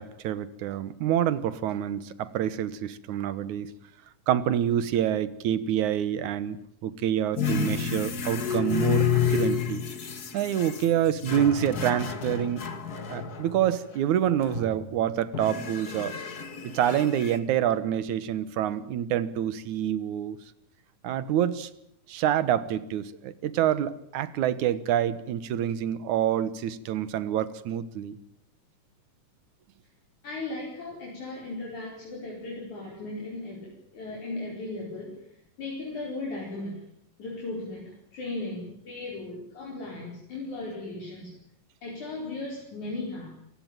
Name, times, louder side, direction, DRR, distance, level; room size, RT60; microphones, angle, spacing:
voice 1, 0.0-3.7 4.3-9.8 10.3-12.7 13.1-16.2 16.7-20.4 21.0-21.7 22.1-28.2, right 10 dB, 70° right, 15 dB, 2.5 m, -27 dB
sound 1, 7.4-13.8 14.3-14.9 15.3-17.4, left 7 dB, 40° left, 1.5 m, -30 dB
voice 2, 30.2-35.1 35.6-36.7 37.2-41.3 41.8-43.4, left 2 dB, 60° left, -3 dB, 6.2 m, -36 dB
27.0 x 16.0 x 9.1 m, 0.74 s
omnidirectional pair, 3.8 m